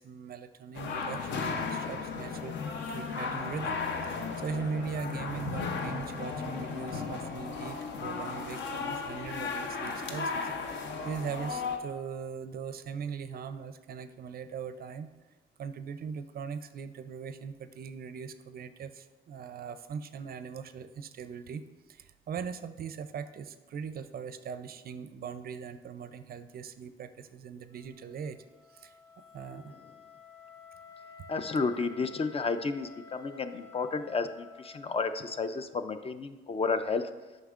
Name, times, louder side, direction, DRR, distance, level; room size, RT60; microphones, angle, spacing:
voice 1, 0.0-2.6 2.9-15.1 15.6-28.4 28.7-29.0 29.3-29.7, right 6 dB, 50° right, 11 dB, 0.4 m, -40 dB
sound 1, 0.7-11.8, left 4 dB, 65° left, 0.7 m, -35 dB
Wind instrument woodwind instrument, 27.7-35.7, left 5 dB, 85° left, 1.2 m, -52 dB
voice 2, 31.3-37.1, left 4 dB, 30° left, 10 dB, 0.4 m, -32 dB
7.8 x 5.5 x 2.4 m, 1.2 s
cardioid pair, 90°, 20 cm